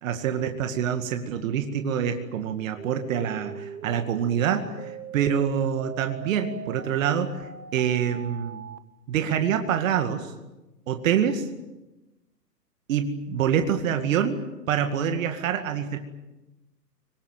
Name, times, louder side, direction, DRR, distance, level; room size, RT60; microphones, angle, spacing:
voice 1, 0.0-7.4 7.7-8.6 9.1-10.3 10.9-11.5 12.9-14.4 14.7-16.0, right 8 dB, 50° right, 7 dB, 2.2 m, -26 dB
sound 1, 2.8-8.8, right 8 dB, 70° right, 1.7 m, -41 dB
24.5 x 20.0 x 9.2 m, 1.0 s
hypercardioid pair, 135°, 50 cm